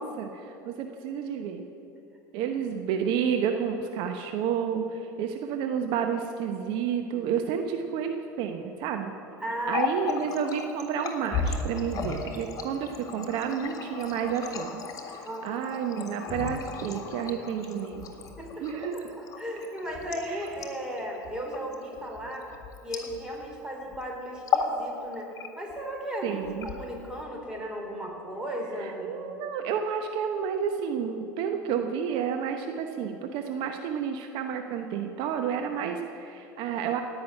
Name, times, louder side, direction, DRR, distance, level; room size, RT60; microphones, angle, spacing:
voice 1, 0.0-1.6 2.3-9.1 9.7-18.1 18.6-19.1 20.3-20.5 26.2-26.7 28.8-37.0, right 7 dB, 60° right, 5 dB, 0.9 m, -30 dB
voice 2, 9.4-9.9 15.2-15.6 18.4-22.5 22.8-29.1, equal, 10° right, -1 dB, 4.1 m, -36 dB
Water tap faucet, 9.5-23.5 23.8-24.0 24.4-24.8 25.1-25.8 26.4-27.2, left 6 dB, 35° left, 1.9 m, -34 dB
17.0 x 6.2 x 9.8 m, 3.0 s
hypercardioid pair, 80°, 10 cm